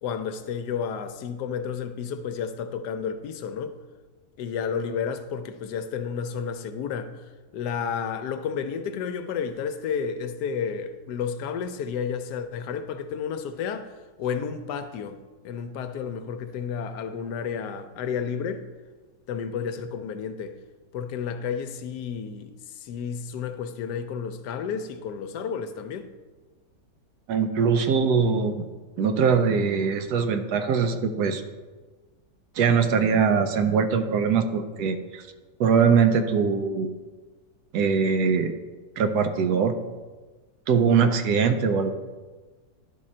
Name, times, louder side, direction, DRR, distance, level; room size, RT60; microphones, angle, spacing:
voice 1, 0.0-3.7 4.4-7.3 7.5-13.9 14.2-15.2 15.4-18.6 19.3-20.6 20.9-26.1, left 6 dB, 75° left, 1.1 m, -31 dB
voice 2, 27.3-28.7 29.0-31.4 32.6-35.2 35.6-36.9 37.7-38.5 39.0-39.7 40.7-41.9, right 6 dB, 75° right, 1.1 m, -22 dB
11.0 x 3.7 x 4.3 m
omnidirectional pair, 1.8 m